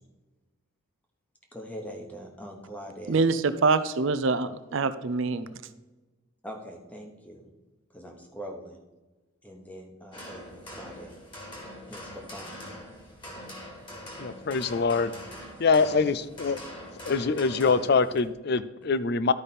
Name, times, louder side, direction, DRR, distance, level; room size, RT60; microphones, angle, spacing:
voice 1, 1.5-3.2 6.4-7.5 7.9-8.8 9.4-11.1 11.9-12.7, equal, 5° left, 1 dB, 1.1 m, -42 dB
voice 2, 3.1-5.5, right 4 dB, 60° right, 12 dB, 0.5 m, -25 dB
sound 1, 10.1-18.2, equal, 20° left, 1.9 m, -43 dB
voice 3, 14.2-15.1 15.6-16.6 17.0-19.3, left 4 dB, 50° left, 15 dB, 0.4 m, -24 dB
12.0 x 5.1 x 4.2 m, 1.2 s
head